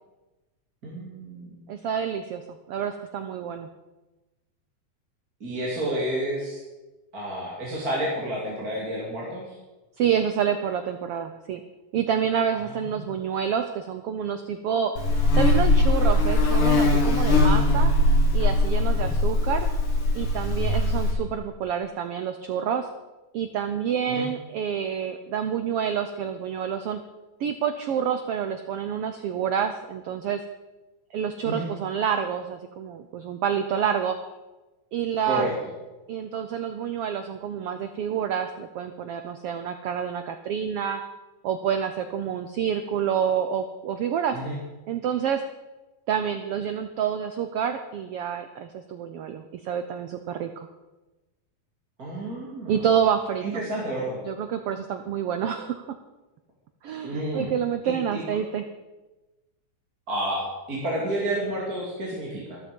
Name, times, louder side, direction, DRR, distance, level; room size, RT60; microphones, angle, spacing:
voice 1, 0.8-1.7 5.4-6.6 7.1-9.6 12.5-13.0 17.2-17.4 18.9-19.2 24.1-24.3 31.4-31.7 35.2-35.5 44.3-44.6 52.0-52.9 53.4-54.2 57.0-57.5 57.8-58.2 60.1-62.6, right 1 dB, 30° right, -4 dB, 3.2 m, -30 dB
voice 2, 1.7-2.4 2.7-3.7 10.0-11.6 11.9-14.9 15.4-17.9 18.3-19.7 20.1-22.9 23.3-27.0 27.4-30.4 31.1-34.2 34.9-35.5 36.1-41.0 41.4-44.4 44.9-45.4 46.1-50.5 52.7-53.5 54.2-55.8 56.8-58.6, right 8 dB, 80° right, 8 dB, 1.3 m, -28 dB
Buzz, 15.0-21.1, left 2 dB, 75° left, 3.8 m, -20 dB
13.5 x 13.5 x 5.3 m, 1.1 s
omnidirectional pair, 3.6 m